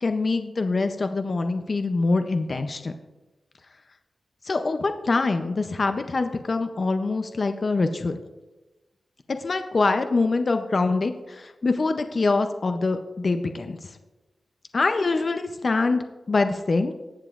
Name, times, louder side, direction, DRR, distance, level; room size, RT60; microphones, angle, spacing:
voice 1, 0.0-2.9 4.4-8.2 9.3-13.8 14.7-16.9, left 3 dB, 40° left, 7 dB, 0.5 m, -24 dB
18.5 x 7.0 x 2.4 m, 1.1 s
wide cardioid pair, 165°, 0 cm